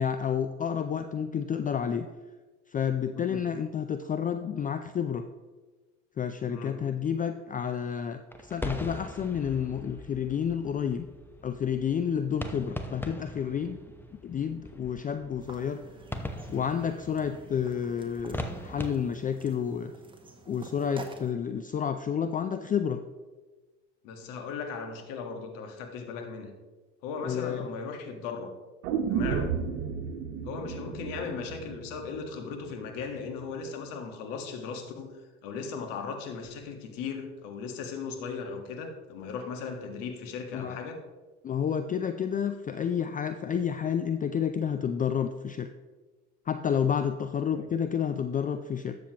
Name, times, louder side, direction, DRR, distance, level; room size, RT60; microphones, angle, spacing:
voice 1, 0.0-2.1 2.7-5.3 6.2-11.1 11.4-13.8 14.2-15.8 16.5-19.9 20.5-23.0 27.2-27.7 40.5-40.8 41.4-45.7 46.5-49.0, left 8 dB, 25° left, 9 dB, 0.4 m, -30 dB
voice 2, 6.5-6.8 24.0-26.5 27.0-28.5 29.1-29.5 30.4-41.0 47.5-47.7, left 5 dB, 65° left, 5 dB, 1.6 m, -37 dB
sound 1, 8.3-18.9, left 1 dB, 5° left, 0.9 m, -41 dB
sound 2, 15.4-21.3, right 2 dB, 15° right, 1.2 m, -48 dB
sound 3, 28.8-32.9 33.2-33.3, right 7 dB, 75° right, 1.1 m, -33 dB
12.5 x 7.1 x 2.9 m, 1.3 s
hypercardioid pair, 75°, 35 cm